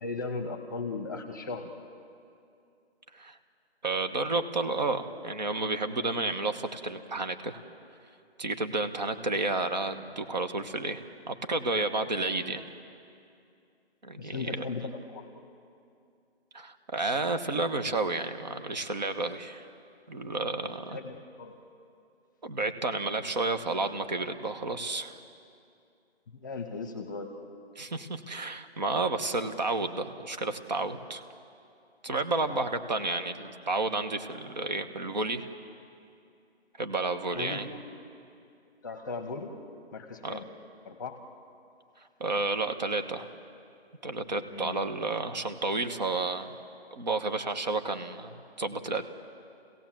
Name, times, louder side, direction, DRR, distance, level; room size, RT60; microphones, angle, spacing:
voice 1, 0.0-1.7 14.2-15.3 20.9-21.6 26.3-27.3 32.5-32.6 37.3-37.8 38.8-39.5 39.9-40.4 40.8-41.2 44.5-44.8, left 3 dB, 20° left, 6 dB, 1.0 m, -37 dB
voice 2, 3.8-7.6 8.4-11.0 11.3-12.6 14.0-14.6 16.5-19.7 20.1-21.0 22.4-25.2 27.8-31.2 32.0-35.5 36.8-37.7 40.2-40.4 42.2-43.3 44.0-46.6 46.9-49.0, right 3 dB, 40° right, 8 dB, 1.2 m, -31 dB
28.0 x 17.0 x 7.6 m, 2.5 s
hypercardioid pair, 165°, 33 cm